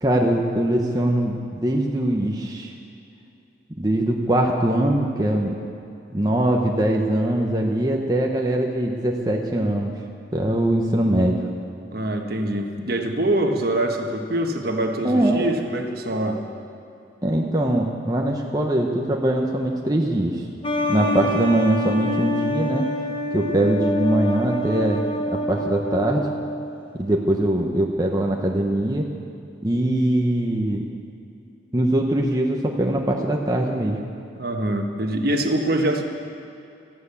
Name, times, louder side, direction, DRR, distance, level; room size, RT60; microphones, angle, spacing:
voice 1, 0.0-2.7 3.8-5.5 6.1-9.9 10.3-11.4 15.0-15.5 17.2-20.4 20.9-22.8 23.3-26.3 26.9-29.0 29.6-30.8 31.7-34.0, right 1 dB, 20° right, 0 dB, 1.0 m, -22 dB
voice 2, 11.9-16.4 34.4-36.0, right 1 dB, 55° right, 3 dB, 1.5 m, -24 dB
sound 1, 20.6-26.9, left 1 dB, 30° left, 1.2 m, -26 dB
13.5 x 12.5 x 8.4 m, 2.6 s
head